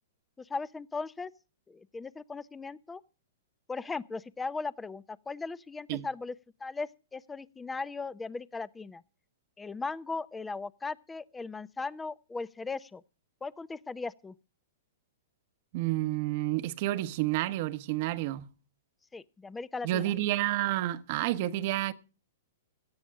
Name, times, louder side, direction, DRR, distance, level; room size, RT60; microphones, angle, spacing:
voice 1, 0.4-1.3 1.7-3.0 3.7-6.3 6.6-9.0 9.6-13.0 13.4-14.4 19.1-20.1, left 4 dB, 10° left, 0.7 m, -38 dB
voice 2, 15.7-18.5 19.8-21.9, right 15 dB, 50° right, 1.1 m, -30 dB
17.5 x 13.5 x 3.7 m
hypercardioid pair, 115°, 0 cm